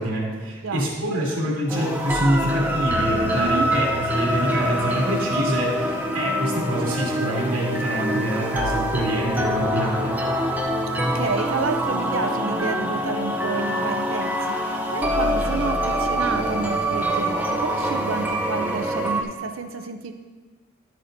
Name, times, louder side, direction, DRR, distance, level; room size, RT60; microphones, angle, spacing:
voice 1, 0.0-10.2, right 1 dB, 85° right, -5 dB, 2.3 m, -25 dB
sound 1, 1.7-19.2, equal, 10° right, 0.5 m, -25 dB
voice 2, 3.4-3.7 10.9-20.1, right 4 dB, 65° right, 7 dB, 0.5 m, -30 dB
11.5 x 7.6 x 2.6 m, 1.4 s
head